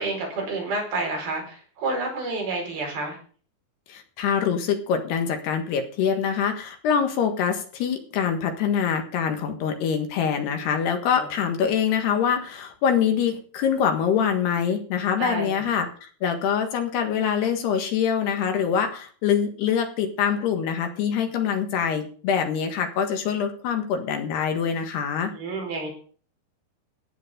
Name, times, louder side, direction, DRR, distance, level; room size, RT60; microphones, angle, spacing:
voice 1, 0.0-3.2 11.2-11.3 15.2-15.6 25.3-25.9, right 3 dB, 60° right, 0 dB, 6.7 m, -29 dB
voice 2, 3.9-25.3, left 7 dB, 70° left, 5 dB, 3.5 m, -24 dB
15.0 x 9.9 x 5.1 m, 0.43 s
omnidirectional pair, 5.1 m